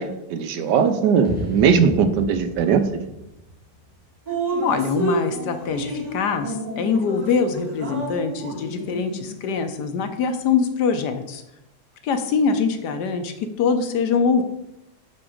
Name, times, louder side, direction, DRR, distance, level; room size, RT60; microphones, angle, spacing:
voice 1, 0.0-2.9, right 6 dB, 75° right, 10 dB, 1.1 m, -19 dB
sound 1, 1.2-4.4, left 1 dB, 5° right, 1.0 m, -35 dB
Drip, 4.3-9.5, right 2 dB, 25° right, 1.1 m, -30 dB
voice 2, 4.6-11.4 12.0-14.4, left 5 dB, 70° left, 7 dB, 1.2 m, -23 dB
8.7 x 3.7 x 4.9 m, 0.87 s
omnidirectional pair, 2.0 m